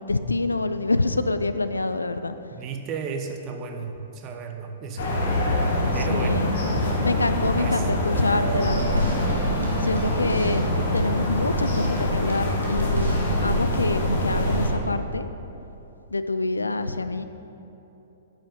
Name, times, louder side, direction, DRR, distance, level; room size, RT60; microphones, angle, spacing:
voice 1, 0.0-2.3 6.1-6.5 7.0-9.1 9.8-10.7 10.9-15.3 16.1-17.2, left 2 dB, 90° left, 11 dB, 0.4 m, -26 dB
voice 2, 2.5-5.5 5.9-6.5 7.6-7.9, right 5 dB, 35° right, 5 dB, 0.9 m, -34 dB
sound 1, 5.0-14.7, left 1 dB, 65° left, 1.6 m, -24 dB
sound 2, 8.3-13.4, right 3 dB, 80° right, 1.7 m, -32 dB
8.9 x 5.5 x 5.8 m, 3.0 s
figure-of-eight pair, 115°, 0 cm